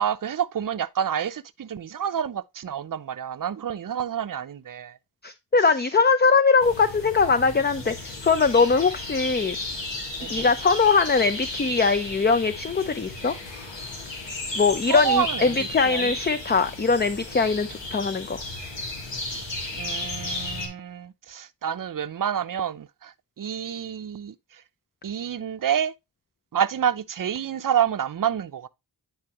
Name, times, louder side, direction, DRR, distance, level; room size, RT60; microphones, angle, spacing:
voice 1, 0.0-5.0 10.2-10.5 14.9-16.1 19.7-24.3 25.0-25.9 26.5-28.7, right 9 dB, 50° right, 0.6 m, -28 dB
voice 2, 5.2-9.6 10.3-13.3 14.6-18.4, left 4 dB, 25° left, 0.5 m, -21 dB
sound 1, 6.6-20.7, left 2 dB, 85° left, 2.2 m, -34 dB
9.7 x 4.2 x 3.0 m
cardioid pair, 55°, 43 cm